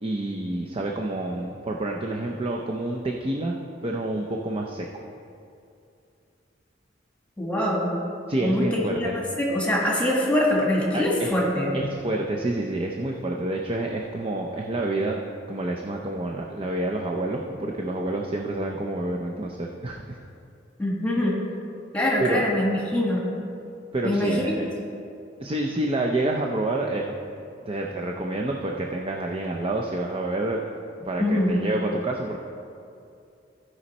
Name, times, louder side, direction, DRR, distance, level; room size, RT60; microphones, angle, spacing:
voice 1, 0.0-3.5 3.8-4.9 8.3-9.2 10.9-11.4 11.7-15.2 15.5-20.2 22.2-22.4 23.9-24.7 25.4-27.1 27.6-30.6 31.1-32.4, right 2 dB, 30° right, 1 dB, 0.5 m, -28 dB
voice 2, 7.4-7.9 8.4-8.7 9.0-11.7 20.8-21.3 21.9-23.2 24.0-24.3 31.2-31.5, left 1 dB, 5° left, -4 dB, 1.6 m, -23 dB
15.0 x 5.4 x 4.2 m, 2.6 s
head